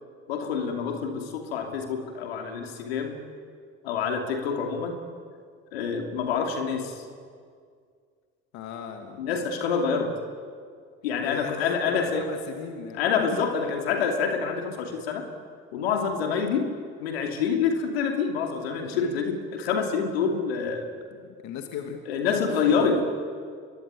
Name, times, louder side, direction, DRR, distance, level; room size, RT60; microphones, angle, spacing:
voice 1, 0.3-3.2 3.8-5.0 5.7-7.0 9.2-10.2 11.0-12.3 13.0-15.3 15.7-16.7 17.0-20.9 22.1-23.0, left 6 dB, 90° left, 3 dB, 2.9 m, -27 dB
voice 2, 8.5-9.3 11.2-13.3 13.6-13.8 18.9-19.2 21.2-22.0 22.5-22.9, left 8 dB, 70° left, 4 dB, 2.4 m, -37 dB
25.0 x 21.0 x 9.6 m, 2.1 s
hypercardioid pair, 60°, 30 cm